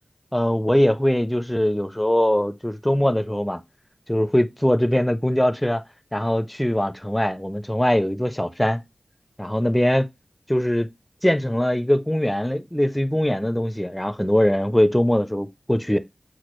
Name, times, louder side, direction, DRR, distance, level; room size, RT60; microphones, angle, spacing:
voice 1, 0.3-3.6 4.1-5.8 6.1-8.8 9.4-10.1 10.5-10.9 11.2-16.0, left 1 dB, 10° left, 0.4 m, -21 dB
6.0 x 2.3 x 3.0 m
wide cardioid pair, 55°, 0 cm